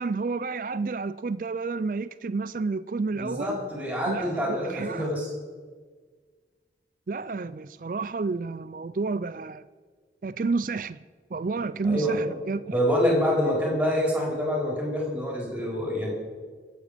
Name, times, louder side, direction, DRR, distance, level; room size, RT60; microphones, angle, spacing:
voice 1, 0.0-3.6 4.1-5.1 7.1-9.6 10.2-11.0 11.3-12.8, right 4 dB, 50° right, 0.4 m, -30 dB
voice 2, 3.1-5.3 11.8-12.2 12.7-16.1, equal, 10° right, 4.4 m, -26 dB
25.5 x 8.6 x 5.1 m
head